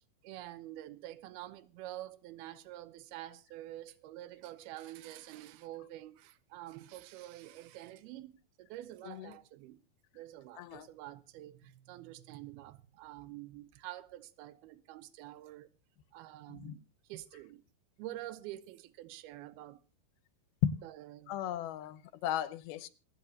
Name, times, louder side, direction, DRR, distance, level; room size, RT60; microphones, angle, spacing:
voice 1, 0.2-9.8 10.1-15.7 16.1-17.6 18.0-19.8 20.8-21.4, right 14 dB, 85° right, 2.7 m, -47 dB
voice 2, 21.3-22.9, left 11 dB, 85° left, 2.7 m, -35 dB
26.5 x 9.1 x 2.8 m
omnidirectional pair, 4.4 m